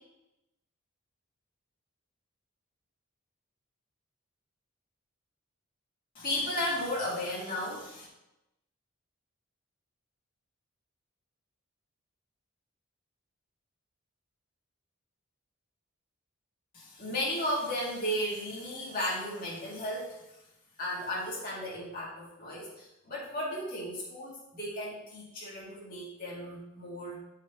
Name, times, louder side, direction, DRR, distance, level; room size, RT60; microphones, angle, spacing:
voice 1, 6.1-8.1 16.7-20.2 20.8-27.2, left 1 dB, 45° left, -6 dB, 2.2 m, -34 dB
12.0 x 5.0 x 2.8 m, 0.93 s
head